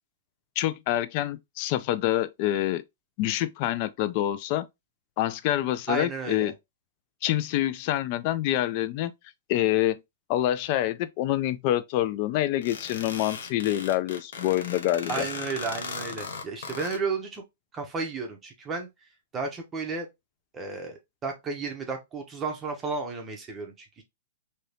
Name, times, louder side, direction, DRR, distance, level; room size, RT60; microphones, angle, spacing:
voice 1, 0.6-2.8 3.2-4.7 5.2-6.5 7.2-9.1 9.5-10.0 10.3-15.2, left 13 dB, 35° left, 0.3 m, -26 dB
voice 2, 5.9-6.5 15.1-17.4 17.7-18.9 19.3-20.1 20.5-24.0, right 4 dB, 15° right, 0.6 m, -33 dB
sound 1, 12.6-17.0, left 5 dB, 65° left, 0.7 m, -37 dB
2.7 x 2.7 x 3.2 m
hypercardioid pair, 160°, 0 cm